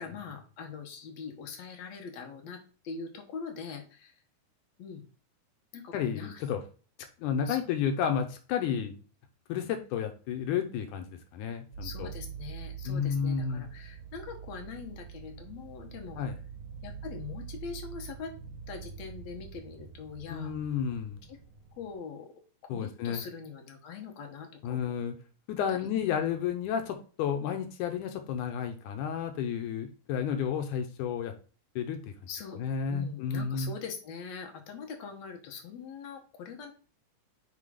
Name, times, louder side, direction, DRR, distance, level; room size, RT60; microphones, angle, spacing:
voice 1, 0.0-4.2 4.8-5.0 5.7-6.4 7.5-7.7 8.7-8.8 11.8-16.2 16.8-18.3 18.7-20.5 21.3-21.4 21.8-22.3 22.6-24.9 25.7-26.2 32.3-32.6 32.9-36.7, left 6 dB, 65° left, 3 dB, 2.3 m, -42 dB
voice 2, 5.9-6.6 7.2-8.9 9.5-12.1 12.9-13.7 16.2-16.4 20.3-21.2 22.7-23.2 24.6-25.1 25.5-31.3 31.8-32.1 32.6-33.7, left 7 dB, 85° left, 6 dB, 2.3 m, -31 dB
sound 1, 11.7-21.9, right 7 dB, 40° right, 2.3 m, -45 dB
5.6 x 4.5 x 5.0 m, 0.38 s
omnidirectional pair, 3.5 m